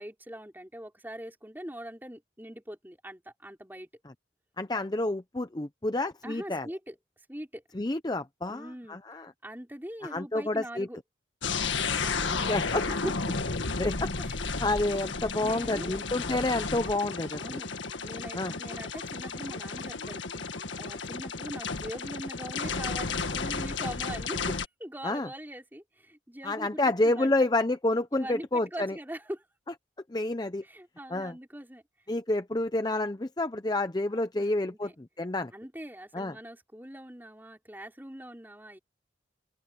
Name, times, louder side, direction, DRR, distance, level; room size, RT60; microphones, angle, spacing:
voice 1, 0.0-3.9 6.2-6.9 7.3-7.6 8.5-9.0 9.4-11.0 12.0-13.4 14.2-14.6 15.4-16.0 17.3-20.4 20.8-27.3 28.1-29.4 30.6-31.8 34.1-34.9 35.5-38.8, equal, 10° right, 4.3 m, -42 dB
voice 2, 4.6-6.7 7.7-9.3 10.0-10.9 12.3-12.8 13.8-17.4 18.4-18.5 25.0-25.3 26.4-28.9 30.1-30.6 31.1-31.3 32.1-35.5 36.1-36.3, left 2 dB, 20° left, 0.6 m, -29 dB
sound 1, 11.4-24.7, left 4 dB, 90° left, 1.8 m, -33 dB
open air
head